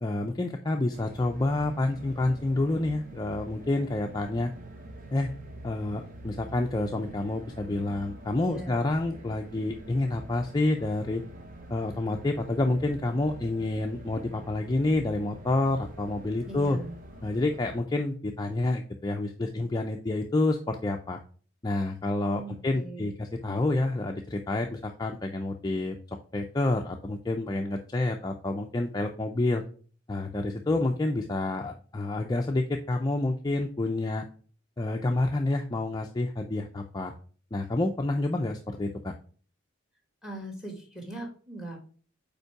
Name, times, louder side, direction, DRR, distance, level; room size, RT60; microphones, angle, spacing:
voice 1, 0.0-4.5 5.1-5.3 5.6-11.2 11.7-16.8 17.2-21.2 21.6-29.6 30.1-34.2 34.8-37.1 37.5-39.1, left 2 dB, 20° left, 3 dB, 0.4 m, -28 dB
sound 1, 0.9-17.8, right 1 dB, 40° right, 0.9 m, -46 dB
voice 2, 8.4-8.7 16.4-16.9 22.3-23.1 40.2-41.9, right 1 dB, 5° right, 2 dB, 1.5 m, -40 dB
5.3 x 4.5 x 4.7 m, 0.42 s
head